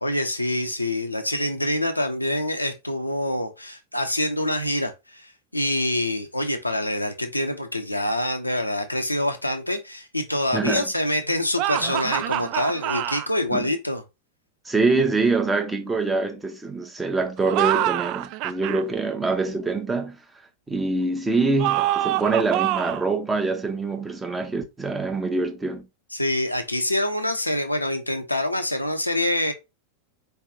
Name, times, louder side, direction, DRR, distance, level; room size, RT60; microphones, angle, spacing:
voice 1, 0.0-14.0 26.1-29.5, left 1 dB, 85° left, 0.7 m, -26 dB
voice 2, 10.5-10.9 13.5-13.7 14.6-20.2 20.7-25.9, right 3 dB, 10° right, 0.9 m, -25 dB
sound 1, 11.6-13.3 17.4-18.8 21.6-23.1, right 14 dB, 40° right, 0.3 m, -25 dB
4.4 x 3.4 x 2.8 m
figure-of-eight pair, 90°, 0 cm